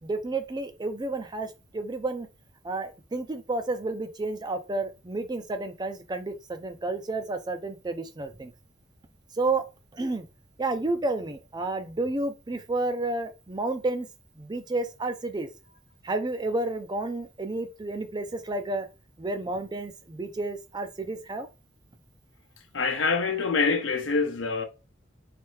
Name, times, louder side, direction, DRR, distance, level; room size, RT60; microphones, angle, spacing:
voice 1, 0.0-2.3 2.6-8.5 9.3-9.6 9.9-10.3 10.6-14.1 14.4-15.5 16.0-18.9 19.2-21.5, right 2 dB, 20° right, 0.4 m, -31 dB
voice 2, 22.7-24.6, left 4 dB, 85° left, 0.7 m, -25 dB
3.4 x 3.2 x 3.2 m
head